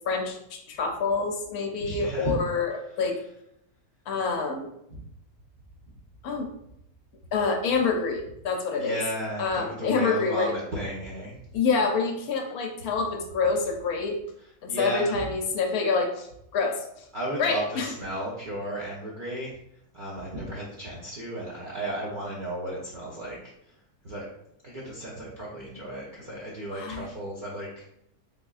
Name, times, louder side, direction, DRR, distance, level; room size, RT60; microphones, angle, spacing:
voice 1, 0.1-3.2 4.1-4.7 6.2-6.5 7.3-9.0 9.4-10.5 11.5-14.2 14.6-17.1 17.4-17.9 26.7-27.0, left 4 dB, 70° left, 3 dB, 1.0 m, -27 dB
voice 2, 1.8-2.4 8.8-11.4 14.7-15.3 17.1-19.5 19.9-23.5 24.0-24.2 24.6-27.8, right 1 dB, 55° right, -6 dB, 0.5 m, -34 dB
3.4 x 3.3 x 2.3 m, 0.76 s
omnidirectional pair, 1.7 m